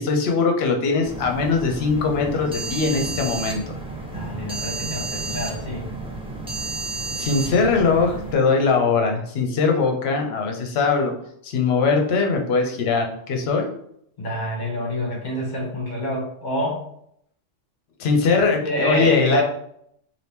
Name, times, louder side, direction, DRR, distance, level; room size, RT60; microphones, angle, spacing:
voice 1, 0.0-3.7 7.2-11.1 11.4-13.7 18.0-19.4, left 4 dB, 60° left, 3 dB, 0.8 m, -21 dB
sound 1, 1.0-8.3, right 3 dB, 5° right, 0.4 m, -31 dB
voice 2, 4.1-5.9 14.2-16.8 18.3-19.4, equal, 40° left, -1 dB, 1.1 m, -27 dB
2.8 x 2.7 x 3.4 m, 0.70 s
omnidirectional pair, 1.3 m